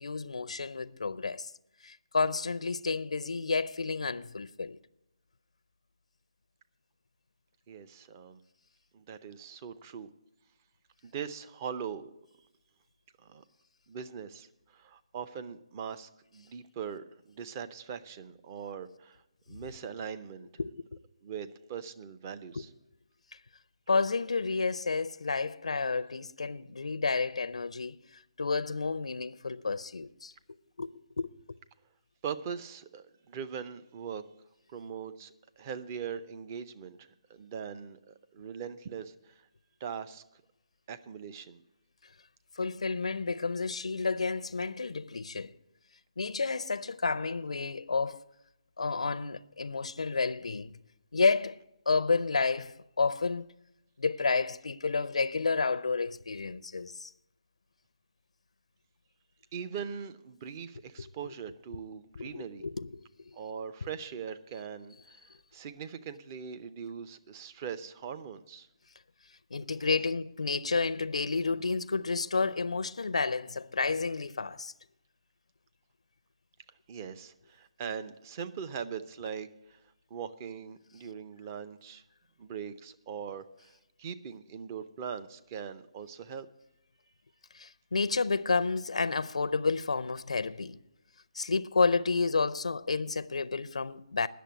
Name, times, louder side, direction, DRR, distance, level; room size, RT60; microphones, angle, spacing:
voice 1, 0.0-1.5 1.8-4.8 20.6-20.7 23.9-28.0 28.4-30.3 30.8-30.9 31.2-31.3 42.6-45.5 46.2-48.3 48.8-50.7 51.1-51.6 51.9-53.5 54.0-57.1 61.0-61.1 62.2-63.1 69.5-74.7 87.5-90.8 91.4-94.3, left 4 dB, 90° left, 0.5 m, -30 dB
voice 2, 7.7-8.4 8.9-10.1 11.0-12.1 12.4-12.5 13.2-13.4 13.9-20.5 21.2-22.7 32.2-34.2 34.7-39.5 39.8-40.2 40.9-41.6 59.5-62.6 63.3-68.7 76.9-82.0 82.4-86.5, right 7 dB, 30° right, 0.6 m, -41 dB
10.0 x 6.8 x 9.2 m
hypercardioid pair, 160°, 3 cm